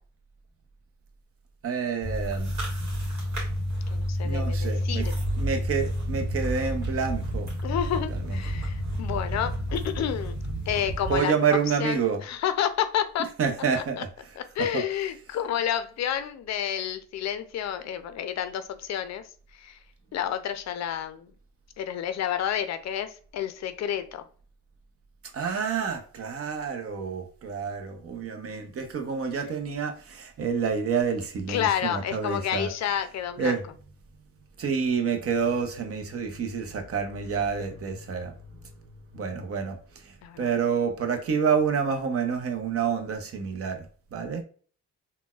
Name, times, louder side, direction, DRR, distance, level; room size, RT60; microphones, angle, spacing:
voice 1, 1.6-2.5 4.2-5.1 5.4-7.5 8.2-8.4 11.1-12.2 13.4-14.1 14.6-14.8 25.3-32.7 33.4-33.6 34.6-38.3 39.1-39.8 40.0-43.9 44.1-44.4, right 6 dB, 50° right, 0.7 m, -28 dB
sound 1, 2.0-11.2, equal, 65° right, 1.4 m, -30 dB
voice 2, 3.9-5.1 7.6-10.4 10.7-13.3 13.8-14.0 14.4-19.2 19.5-19.8 20.1-21.3 21.8-24.2 31.5-33.6 40.2-40.5, left 9 dB, 60° left, 0.5 m, -30 dB
3.9 x 2.2 x 2.3 m
cardioid pair, 90°, 30 cm